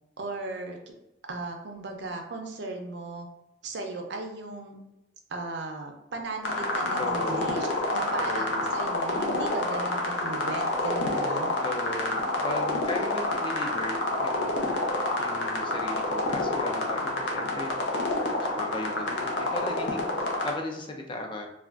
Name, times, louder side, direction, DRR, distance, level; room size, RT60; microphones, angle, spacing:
voice 1, 0.2-0.8 1.3-3.3 3.6-4.8 5.3-11.5, right 2 dB, 70° right, 3 dB, 0.5 m, -36 dB
sound 1, 6.4-20.5, left 2 dB, 80° left, 0.6 m, -28 dB
voice 2, 7.0-7.7 8.1-8.7 11.6-14.7 15.2-18.0 18.4-21.5, left 2 dB, 25° left, 2 dB, 0.3 m, -37 dB
3.3 x 2.3 x 2.4 m, 0.95 s
head